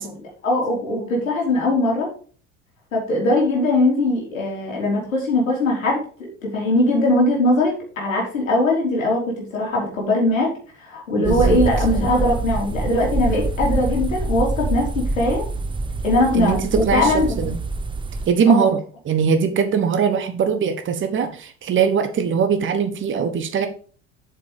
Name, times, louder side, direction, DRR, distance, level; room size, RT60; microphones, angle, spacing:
voice 1, 0.0-2.1 2.9-10.5 10.8-15.4 16.0-17.5 18.5-18.7, left 1 dB, 75° left, -2 dB, 4.1 m, -21 dB
sound 1, 11.2-18.3, right 2 dB, 10° right, 0.8 m, -25 dB
voice 2, 11.2-11.6 16.3-17.6 18.3-18.8 19.0-23.7, right 6 dB, 30° right, 7 dB, 1.4 m, -21 dB
8.0 x 6.9 x 5.0 m, 0.42 s
figure-of-eight pair, 70°, 40 cm